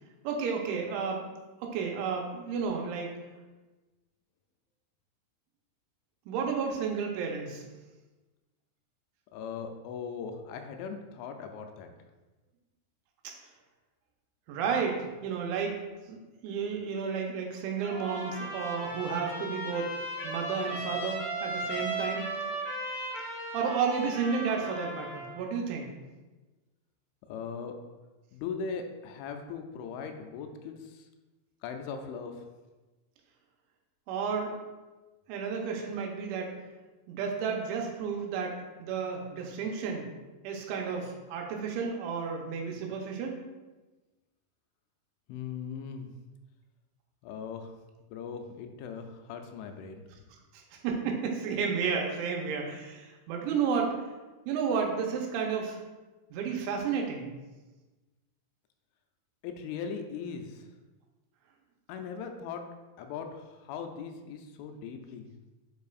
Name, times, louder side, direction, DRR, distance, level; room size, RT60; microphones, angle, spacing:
voice 1, 0.2-1.3 1.6-3.1 6.3-7.6 14.5-15.7 16.1-16.2 16.4-19.9 20.2-22.2 23.5-25.9 34.1-34.6 35.3-36.5 37.1-40.1 40.4-43.4 50.5-53.9 54.5-55.8 56.3-57.3, right 6 dB, 80° right, 1 dB, 3.1 m, -32 dB
voice 2, 9.3-11.9 27.3-27.8 28.3-31.1 31.6-32.5 45.3-46.1 47.2-47.7 48.0-50.1 59.4-60.7 61.9-62.6 63.0-65.3, left 6 dB, 85° left, 5 dB, 2.9 m, -39 dB
Trumpet, 17.8-25.4, right 2 dB, 60° left, 3.7 m, -36 dB
9.4 x 4.7 x 2.4 m, 1.2 s
omnidirectional pair, 5.6 m